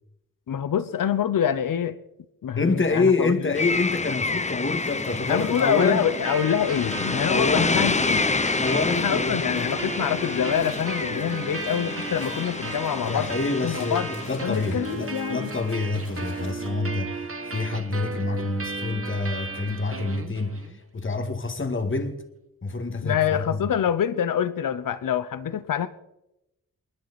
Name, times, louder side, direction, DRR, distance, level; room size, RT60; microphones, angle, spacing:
voice 1, 0.5-2.0 2.4-3.6 5.3-8.2 8.9-13.3 13.6-14.1 14.4-15.5 23.0-25.9, left 9 dB, 80° left, 0.9 m, -26 dB
voice 2, 2.6-6.0 7.3-7.8 8.6-9.4 13.1-22.2 22.6-23.7, left 3 dB, 40° left, 2.0 m, -27 dB
sound 1, 3.6-14.9, left 3 dB, 20° left, 0.7 m, -28 dB
sound 2, 4.8-16.7, left 3 dB, 60° left, 4.5 m, -47 dB
sound 3, 5.8-20.8, right 3 dB, 40° right, 1.8 m, -35 dB
29.5 x 10.5 x 4.2 m
cardioid pair, 65°, 33 cm